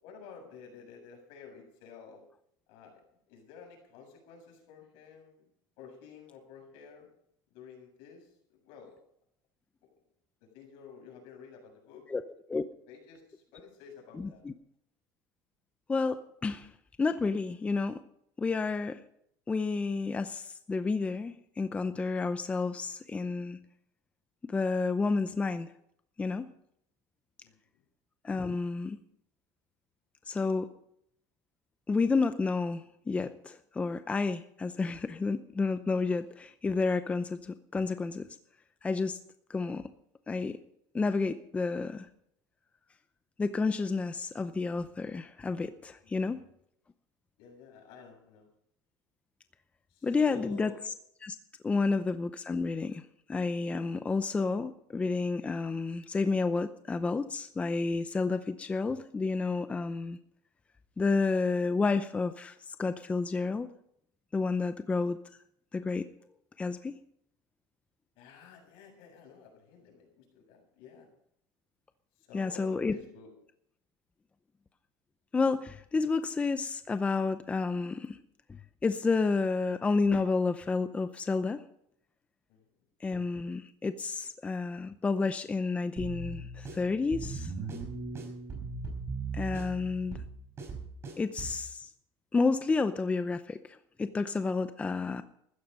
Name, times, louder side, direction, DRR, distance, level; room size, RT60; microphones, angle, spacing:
voice 1, 0.0-2.2 2.7-3.0 3.3-5.4 5.8-7.1 7.5-8.9 10.4-12.1 12.9-14.4 27.4-27.5 46.0-46.2 47.4-48.5 49.9-50.8 68.2-71.1 72.2-73.3 82.5-82.6, left 6 dB, 70° left, 2 dB, 7.3 m, -51 dB
voice 2, 14.1-14.5 15.9-16.7 17.0-18.0 18.4-19.0 19.5-23.6 24.5-25.7 26.2-26.5 28.2-29.0 30.3-30.7 31.9-38.3 38.8-39.2 39.5-39.9 40.3-40.6 40.9-42.1 43.4-46.4 50.0-50.7 51.2-51.4 51.6-53.0 53.3-60.2 61.0-63.7 64.3-65.2 65.7-66.1 66.6-67.0 72.3-72.9 75.3-78.2 78.5-81.7 83.0-87.5 89.3-90.2 91.2-91.9 92.3-95.2, left 4 dB, 15° left, 11 dB, 0.6 m, -30 dB
sound 1, 86.0-91.6, right 4 dB, 30° right, 5.1 m, -39 dB
15.0 x 13.5 x 5.3 m, 0.71 s
cardioid pair, 145°, 9 cm